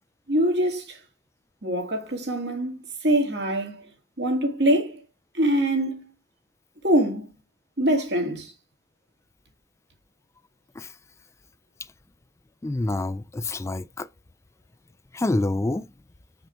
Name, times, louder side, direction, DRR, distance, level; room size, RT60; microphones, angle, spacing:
voice 1, 0.3-1.0 1.6-3.8 4.2-5.0 5.3-6.0 6.8-7.3 7.8-8.5, right 1 dB, 70° right, 2.3 m, -24 dB
voice 2, 12.6-14.1 15.1-15.9, left 2 dB, 15° left, 0.3 m, -27 dB
7.1 x 5.7 x 3.4 m
head